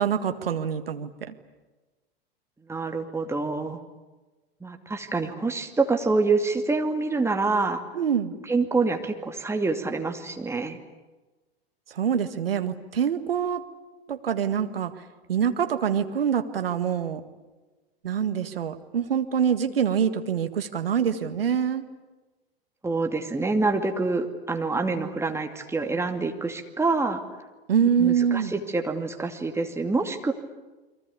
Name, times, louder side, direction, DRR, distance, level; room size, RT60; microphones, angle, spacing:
voice 1, 0.0-1.3 7.9-8.3 11.9-13.6 14.1-14.9 15.3-17.2 18.0-21.8 27.7-28.5, right 8 dB, 70° right, 9 dB, 1.9 m, -25 dB
voice 2, 2.7-3.8 4.6-7.8 8.5-10.8 22.8-27.2 28.0-30.3, right 3 dB, 10° right, 4 dB, 2.4 m, -26 dB
29.5 x 23.0 x 8.5 m, 1.2 s
figure-of-eight pair, 90°, 30 cm